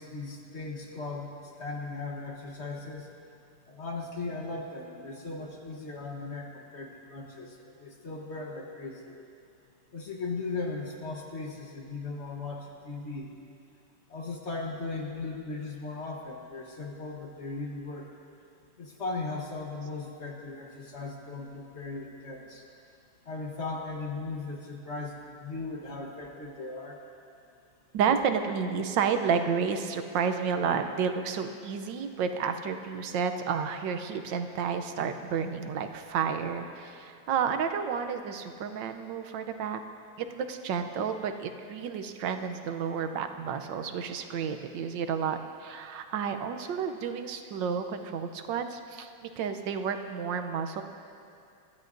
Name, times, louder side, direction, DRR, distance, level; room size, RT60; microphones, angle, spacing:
voice 1, 0.0-3.1 3.7-9.2 9.9-13.3 14.1-18.1 18.8-22.6 23.2-27.0, left 3 dB, 40° left, 0 dB, 1.4 m, -38 dB
voice 2, 27.9-39.8 40.2-50.8, right 6 dB, 85° right, 7 dB, 1.5 m, -31 dB
24.0 x 13.0 x 2.6 m, 2.6 s
omnidirectional pair, 1.9 m